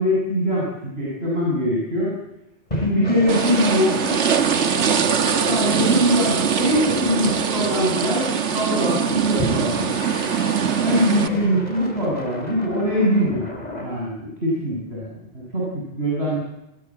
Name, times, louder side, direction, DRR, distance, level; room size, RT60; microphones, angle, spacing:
voice 1, 0.0-2.1 2.7-4.1 5.4-9.8 10.8-13.4 13.8-16.4, equal, 65° right, -5 dB, 8.1 m, -22 dB
sound 1, 2.7-8.6 9.4-13.9, left 1 dB, 35° left, 4.7 m, -33 dB
sound 2, 3.3-11.3, right 7 dB, 90° right, 1.5 m, -22 dB
27.0 x 21.5 x 7.7 m, 0.88 s
omnidirectional pair, 1.2 m